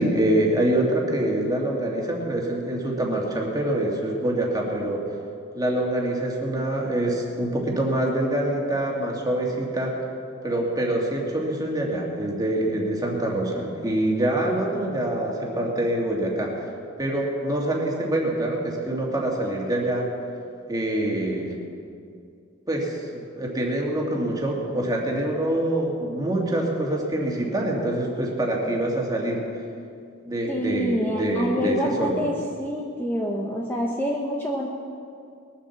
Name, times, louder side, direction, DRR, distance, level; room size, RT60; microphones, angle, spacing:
voice 1, 0.0-5.1 5.5-10.0 10.4-16.7 17.0-20.1 20.7-21.6 22.7-23.1 23.4-29.6 30.3-32.2, right 1 dB, 20° right, -1 dB, 2.2 m, -25 dB
voice 2, 14.2-14.8 30.5-34.7, equal, 10° left, -2 dB, 1.1 m, -27 dB
20.5 x 7.4 x 7.2 m, 2.4 s
head